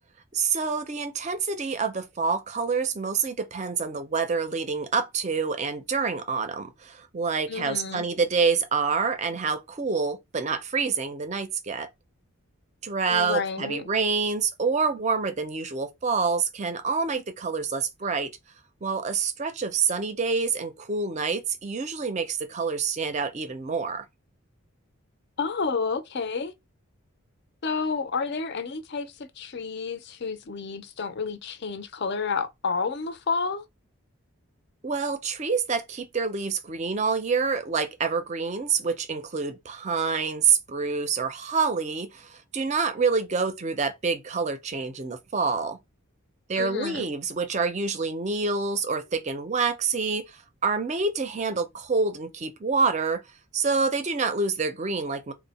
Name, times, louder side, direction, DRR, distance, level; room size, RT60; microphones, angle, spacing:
voice 1, 0.3-11.9 12.8-18.3 18.8-24.1 34.8-45.8 46.5-53.2 53.5-55.3, right 5 dB, 30° right, 0.4 m, -27 dB
voice 2, 7.5-8.0 13.1-13.8 25.4-26.5 27.6-33.6 46.6-47.1, left 5 dB, 50° left, 0.5 m, -30 dB
3.4 x 2.1 x 4.0 m
head